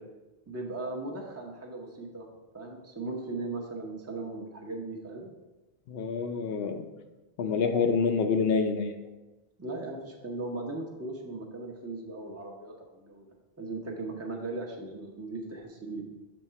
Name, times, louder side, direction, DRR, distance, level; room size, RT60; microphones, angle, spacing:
voice 1, 0.5-2.3 2.5-5.3 9.6-13.3 13.6-16.0, right 2 dB, 15° right, 0 dB, 0.8 m, -38 dB
voice 2, 5.9-6.8 7.4-9.0, left 5 dB, 75° left, 6 dB, 0.8 m, -27 dB
6.3 x 3.7 x 5.6 m, 1.1 s
omnidirectional pair, 1.1 m